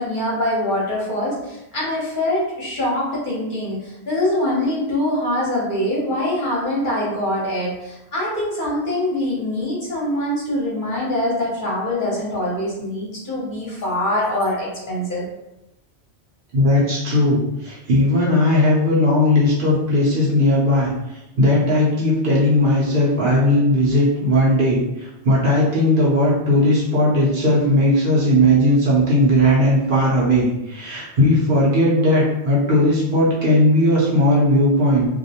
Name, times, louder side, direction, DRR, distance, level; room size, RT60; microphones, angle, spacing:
voice 1, 0.0-15.3, left 1 dB, 50° left, -6 dB, 0.8 m, -24 dB
voice 2, 16.5-20.9 21.4-35.1, left 1 dB, 55° right, -7 dB, 0.8 m, -17 dB
2.4 x 2.0 x 2.7 m, 0.91 s
omnidirectional pair, 1.2 m